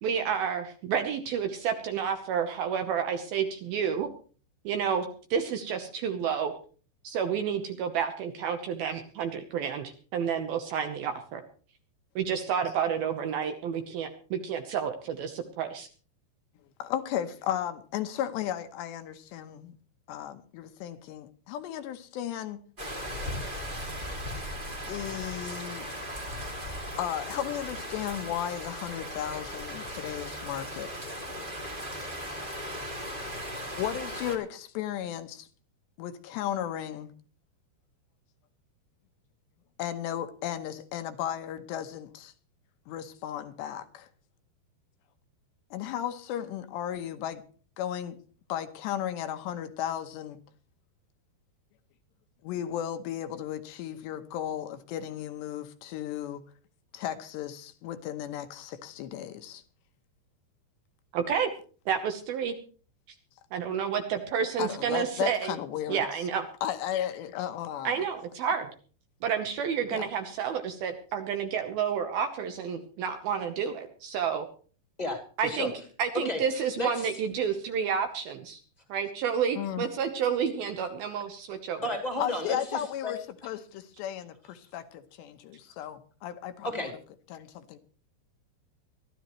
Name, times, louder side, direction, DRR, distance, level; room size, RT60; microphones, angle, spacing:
voice 1, 0.0-4.1 4.7-6.5 7.0-11.4 12.2-15.9 61.1-61.5 61.9-62.5 63.5-65.5 65.9-66.4 67.8-68.7 69.2-74.5 75.4-75.7 76.0-78.6 78.9-81.8, right 7 dB, 70° right, 7 dB, 2.4 m, -30 dB
voice 2, 16.8-19.7 20.1-22.6 24.9-25.9 27.0-30.9 33.7-35.5 36.0-37.1 39.8-42.3 42.9-44.1 45.7-47.4 47.8-48.2 48.5-50.4 52.4-56.4 56.9-59.6 64.6-66.1 66.6-68.0 69.9-70.1 79.6-79.9 82.2-86.9 87.3-87.8, left 10 dB, 75° left, 9 dB, 3.0 m, -35 dB
sound 1, 22.8-34.4, equal, 15° right, 1.7 m, -37 dB
voice 3, 75.0-75.7 76.2-76.4 76.8-77.1 81.8-83.1 86.6-86.9, left 1 dB, 15° left, 3 dB, 1.8 m, -33 dB
22.5 x 14.0 x 3.1 m, 0.40 s
omnidirectional pair, 5.3 m